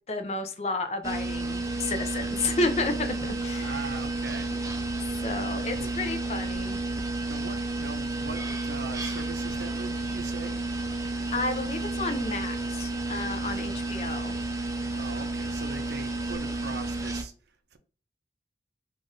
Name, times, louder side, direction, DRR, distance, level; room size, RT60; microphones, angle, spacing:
voice 1, 0.1-3.9 5.2-6.8 11.3-14.4, left 3 dB, 35° left, 0.5 m, -31 dB
sound 1, 1.0-17.2, right 2 dB, 20° right, 0.5 m, -31 dB
voice 2, 3.4-4.6 5.8-6.0 7.3-10.6 14.9-17.8, right 4 dB, 65° right, 0.5 m, -41 dB
3.7 x 2.5 x 3.8 m
head